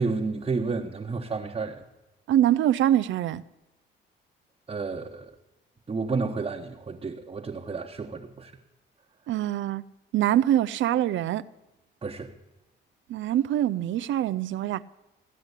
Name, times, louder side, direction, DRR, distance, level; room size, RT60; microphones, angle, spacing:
voice 1, 0.0-1.8 4.7-5.3 5.9-8.5 12.0-12.3, right 4 dB, 30° right, 1.2 m, -31 dB
voice 2, 2.3-3.4 9.3-9.8 10.1-11.4 13.1-14.8, right 12 dB, 70° right, 0.5 m, -24 dB
15.5 x 10.0 x 8.2 m
cardioid pair, 90°, 20 cm